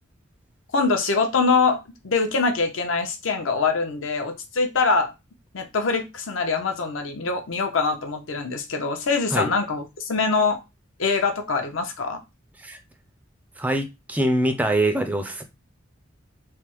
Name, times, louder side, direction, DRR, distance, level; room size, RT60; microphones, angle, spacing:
voice 1, 0.7-5.1 5.5-10.6 11.0-12.2, left 4 dB, 80° left, 0.7 m, -24 dB
voice 2, 13.6-15.4, right 1 dB, 10° right, 0.3 m, -23 dB
3.3 x 2.0 x 3.0 m
head